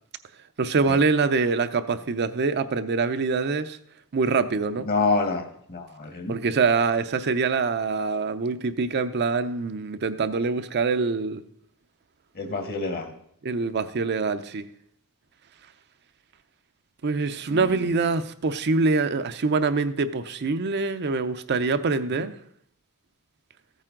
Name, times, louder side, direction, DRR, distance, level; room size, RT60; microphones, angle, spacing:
voice 1, 0.6-3.8 4.1-4.9 6.3-11.4 13.4-14.6 17.0-22.3, right 4 dB, 50° right, 10 dB, 0.6 m, -24 dB
voice 2, 4.8-6.4 12.3-13.1 17.5-17.9 22.1-22.2, left 3 dB, 45° left, 6 dB, 1.5 m, -28 dB
14.5 x 9.0 x 3.8 m, 0.67 s
head